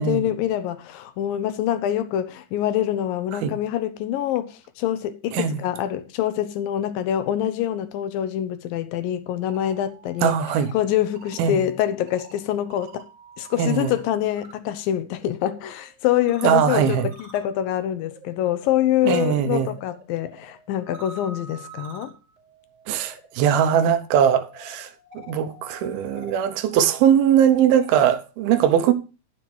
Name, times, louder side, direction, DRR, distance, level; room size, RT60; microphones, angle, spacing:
voice 1, 0.0-10.4 10.7-13.0 13.4-22.1, left 11 dB, 75° left, 2.4 m, -25 dB
sound 1, 9.3-14.5 14.8-28.1, right 2 dB, 45° right, 3.6 m, -48 dB
voice 2, 10.2-10.7 11.4-11.6 13.6-13.9 16.4-17.1 19.0-19.7 22.9-28.9, right 9 dB, 85° right, 2.7 m, -20 dB
10.5 x 7.7 x 4.5 m
omnidirectional pair, 4.3 m